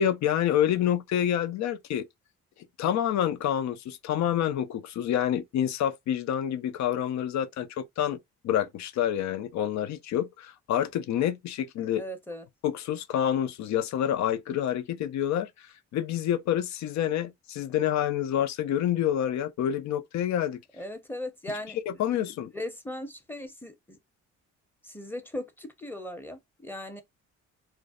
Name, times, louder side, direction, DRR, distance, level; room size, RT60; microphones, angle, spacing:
voice 1, 0.0-2.1 2.8-8.2 8.4-12.0 12.6-15.7 15.9-20.6 21.9-22.5, left 10 dB, 65° left, 0.5 m, -28 dB
voice 2, 11.9-12.5 20.7-21.8 22.1-22.3 22.5-24.0 24.8-27.0, left 1 dB, 5° left, 0.7 m, -38 dB
2.5 x 2.1 x 2.3 m
cardioid pair, 90°, 30 cm